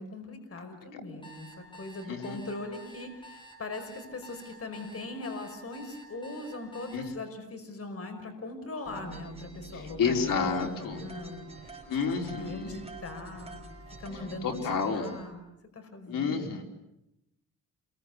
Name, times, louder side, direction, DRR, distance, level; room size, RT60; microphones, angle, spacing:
voice 1, 0.0-10.5 10.8-13.7 14.0-15.5 15.7-16.6, left 2 dB, 45° left, 6 dB, 5.3 m, -40 dB
sound 1, 1.2-7.0, equal, 15° left, 7.6 m, -50 dB
sound 2, 8.8-15.3, right 3 dB, 20° right, 6.0 m, -46 dB
voice 2, 9.7-11.0 11.9-12.8 14.4-15.1 16.1-16.6, left 5 dB, 80° left, 3 dB, 4.6 m, -30 dB
28.5 x 22.5 x 8.1 m, 0.87 s
cardioid pair, 95°, 32 cm